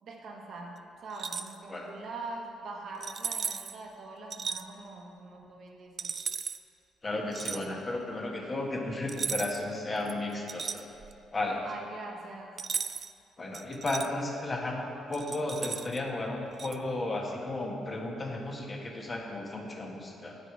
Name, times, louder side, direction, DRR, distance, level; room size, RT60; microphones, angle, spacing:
voice 1, 0.0-6.1 11.6-12.6, right 2 dB, 60° right, 0 dB, 1.2 m, -43 dB
sound 1, 1.1-1.6 3.0-3.8 4.3-4.6 6.0-6.6 7.3-7.7 9.1-9.7 10.1-11.3 12.6-13.1 13.5-14.1 15.1-16.0 16.6-16.8, right 6 dB, 45° right, 0.3 m, -36 dB
voice 2, 7.0-10.8 11.3-11.6 13.4-20.4, left 2 dB, 30° left, 0 dB, 1.3 m, -34 dB
8.2 x 8.0 x 4.7 m, 2.5 s
cardioid pair, 90°, 0 cm